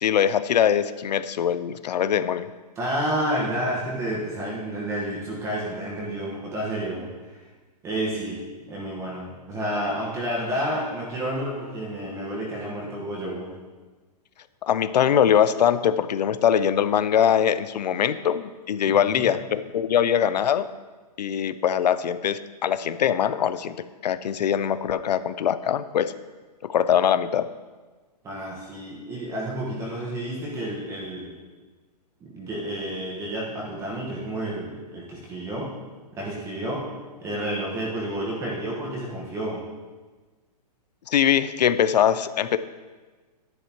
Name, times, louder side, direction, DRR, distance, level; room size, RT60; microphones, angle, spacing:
voice 1, 0.0-2.5 14.6-20.7 21.2-26.1 26.6-27.5 41.1-42.6, left 9 dB, 80° left, 14 dB, 0.6 m, -22 dB
voice 2, 2.8-7.4 7.8-13.6 18.9-19.2 28.2-31.4 32.2-35.7 36.1-36.9 37.2-39.6, right 1 dB, 15° right, -5 dB, 1.3 m, -30 dB
10.5 x 9.4 x 3.0 m, 1.3 s
hypercardioid pair, 160°, 21 cm